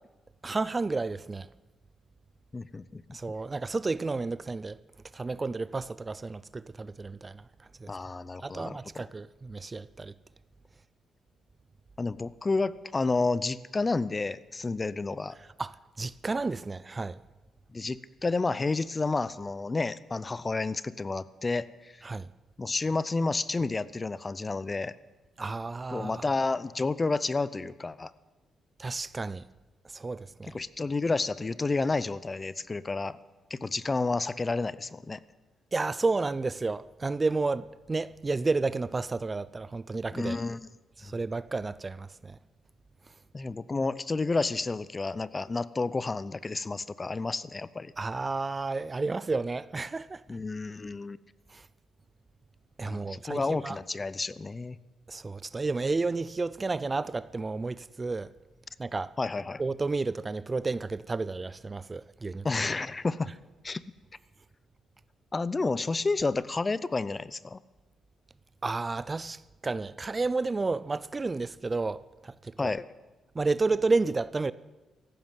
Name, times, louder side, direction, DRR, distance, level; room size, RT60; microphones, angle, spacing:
voice 1, 0.4-1.5 3.1-4.8 5.1-7.4 7.8-7.9 8.4-10.1 15.6-17.2 22.0-22.3 25.4-26.2 28.8-29.4 29.8-30.6 35.7-40.4 41.0-42.4 48.0-50.2 51.5-51.7 52.8-53.8 55.1-58.3 58.8-59.1 59.6-62.4 68.6-72.7 73.3-74.5, right 3 dB, 25° right, 0.4 m, -31 dB
voice 2, 2.5-3.0 7.9-8.8 12.0-15.4 17.7-21.9 22.6-25.0 25.9-28.1 30.5-33.2 33.5-35.2 40.1-40.6 43.3-47.9 50.3-51.2 52.8-54.8 59.2-59.6 62.4-63.3 63.6-63.8 65.3-67.6 72.6-72.8, left 3 dB, 25° left, 0.6 m, -30 dB
15.0 x 11.5 x 7.5 m
cardioid pair, 85°, 0 cm